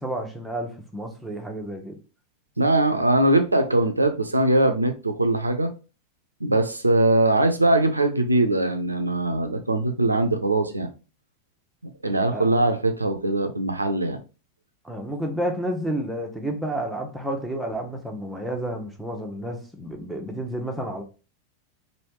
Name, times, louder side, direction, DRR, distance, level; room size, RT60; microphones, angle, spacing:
voice 1, 0.0-2.0 12.3-12.5 14.8-21.0, right 1 dB, ahead, 0.7 m, -30 dB
voice 2, 2.6-5.7 6.4-10.9 12.0-14.2, right 1 dB, 80° right, 0.4 m, -21 dB
3.2 x 2.6 x 3.0 m
figure-of-eight pair, 90°, 0 cm